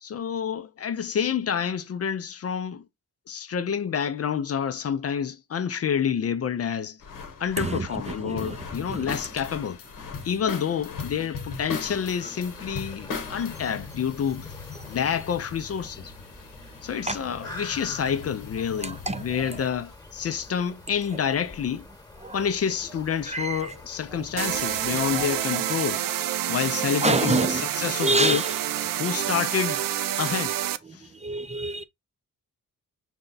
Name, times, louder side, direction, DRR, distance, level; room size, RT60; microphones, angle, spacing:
voice 1, 0.0-2.8 3.3-7.0 7.4-9.8 10.2-14.5 14.9-16.1 16.8-21.8 22.3-26.0 26.5-28.4 29.0-29.8 30.2-30.6 30.9-31.1, left 7 dB, 45° left, 0.5 m, -28 dB
sound 1, 7.0-19.7, left 5 dB, 80° left, 1.0 m, -39 dB
voice 2, 7.6-9.1 17.0-17.2 18.8-19.4 22.2-22.4 23.3-23.7 24.1-24.2 25.1-25.6 27.0-27.6 28.0-28.6 30.9-31.8, right 2 dB, 20° right, 0.4 m, -28 dB
sound 2, 11.9-25.4, left 2 dB, 10° left, 1.2 m, -46 dB
sound 3, 24.4-30.8, right 12 dB, 75° right, 0.5 m, -28 dB
5.0 x 2.2 x 3.9 m
cardioid pair, 90°, 33 cm